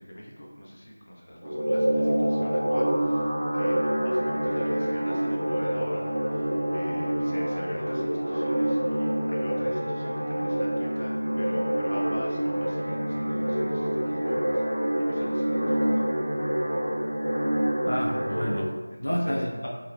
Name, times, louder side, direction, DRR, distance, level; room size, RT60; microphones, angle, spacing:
voice 1, 0.0-16.0 18.9-19.7, equal, 40° left, -3 dB, 0.7 m, -41 dB
sound 1, 1.4-18.6, right 1 dB, 55° right, 1.0 m, -26 dB
voice 2, 17.8-19.7, equal, 75° left, -1 dB, 0.4 m, -30 dB
2.8 x 2.7 x 3.2 m, 1.2 s
figure-of-eight pair, 170°, 0 cm